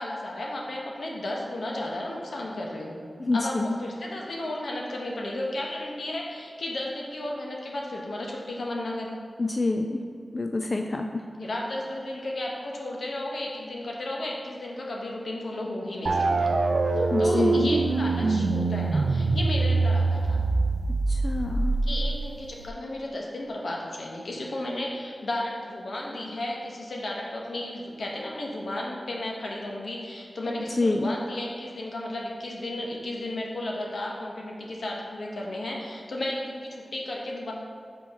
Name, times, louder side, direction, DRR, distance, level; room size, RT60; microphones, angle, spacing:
voice 1, 0.0-3.0 3.3-3.5 3.8-9.2 11.4-16.5 16.9-20.4 21.9-37.5, left 1 dB, 80° left, -2 dB, 1.1 m, -34 dB
voice 2, 3.2-3.8 9.4-10.0 10.3-11.3 17.1-17.7 21.1-21.8 30.7-31.1, left 2 dB, 40° left, 4 dB, 0.3 m, -27 dB
sound 1, 16.1-22.7, right 3 dB, 70° right, 0.3 m, -24 dB
5.3 x 4.5 x 5.6 m, 2.3 s
wide cardioid pair, 90°, 0 cm